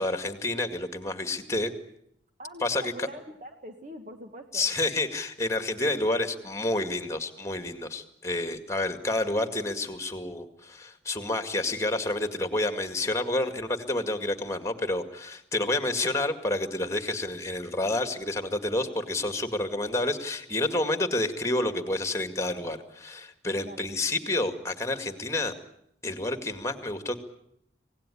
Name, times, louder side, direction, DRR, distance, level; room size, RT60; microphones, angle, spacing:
voice 1, 0.0-1.7 2.6-3.1 4.5-25.5 26.0-27.2, left 2 dB, 15° left, 8 dB, 2.1 m, -29 dB
voice 2, 2.4-4.7 23.6-23.9, right 1 dB, 45° right, 5 dB, 1.5 m, -43 dB
26.0 x 18.5 x 9.9 m, 0.76 s
head